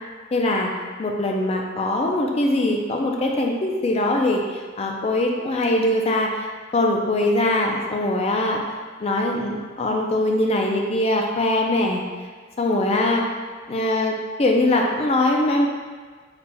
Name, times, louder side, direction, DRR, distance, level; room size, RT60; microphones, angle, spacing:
voice 1, 0.3-0.7 1.0-4.4 4.8-6.5 6.7-8.6 9.0-12.0 12.6-13.2 13.7-15.7, left 1 dB, 30° left, 1 dB, 0.4 m, -22 dB
4.0 x 3.3 x 2.2 m, 1.5 s
head